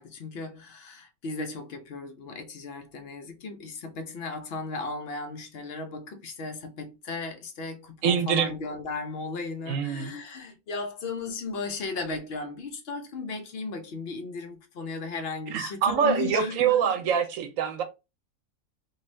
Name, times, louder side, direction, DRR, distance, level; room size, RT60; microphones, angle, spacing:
voice 1, 0.0-17.1, left 3 dB, 65° left, 0.7 m, -36 dB
voice 2, 8.0-8.5 9.7-10.1 15.5-17.8, right 7 dB, 85° right, 1.0 m, -25 dB
2.5 x 2.4 x 3.1 m
omnidirectional pair, 1.4 m